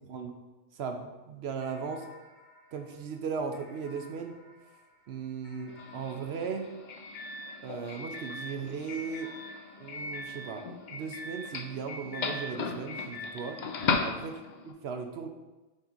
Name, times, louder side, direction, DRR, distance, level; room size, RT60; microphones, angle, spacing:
voice 1, 0.7-2.1 2.7-4.3 5.1-6.7 7.6-9.3 9.8-13.6 14.0-14.4 14.6-15.3, right 6 dB, 60° right, 5 dB, 0.8 m, -37 dB
sound 1, 1.6-8.2 8.9-11.7, left 3 dB, 90° left, 1.8 m, -58 dB
Doorbell, 5.7-14.7, left 4 dB, 55° left, 0.5 m, -37 dB
5.5 x 3.7 x 5.2 m, 1.1 s
omnidirectional pair, 1.4 m